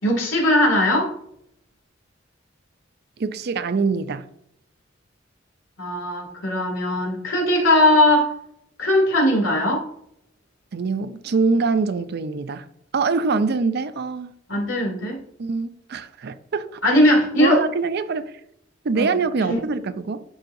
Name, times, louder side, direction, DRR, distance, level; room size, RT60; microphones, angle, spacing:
voice 1, 0.0-1.1 5.8-8.3 8.8-9.9 14.5-15.2 16.8-17.6 19.0-19.1 19.5-19.6, left 1 dB, 80° left, 2.3 m, -19 dB
voice 2, 3.2-4.3 10.7-12.7 12.9-14.3 15.4-16.8 17.4-18.3 18.8-20.2, right 4 dB, 55° right, 0.5 m, -24 dB
11.5 x 3.9 x 2.6 m
head